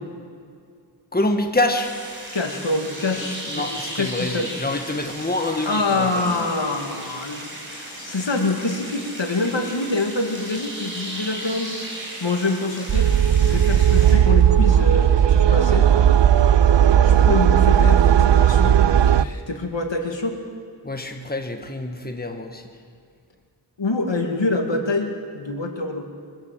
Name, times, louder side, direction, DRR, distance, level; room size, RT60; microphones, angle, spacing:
voice 1, 1.1-1.9 3.2-6.5 20.8-22.6, left 2 dB, 20° left, 4 dB, 1.7 m, -26 dB
sound 1, 1.7-14.1, right 1 dB, 25° right, 7.5 m, -36 dB
voice 2, 2.3-3.7 3.9-4.5 5.6-11.8 12.2-13.1 13.4-15.9 17.0-20.4 23.8-26.0, left 2 dB, 75° left, 4 dB, 2.3 m, -26 dB
sound 2, 12.9-19.2, right 9 dB, 70° right, 0.6 m, -15 dB
23.5 x 15.5 x 7.8 m, 2.2 s
wide cardioid pair, 65°, 44 cm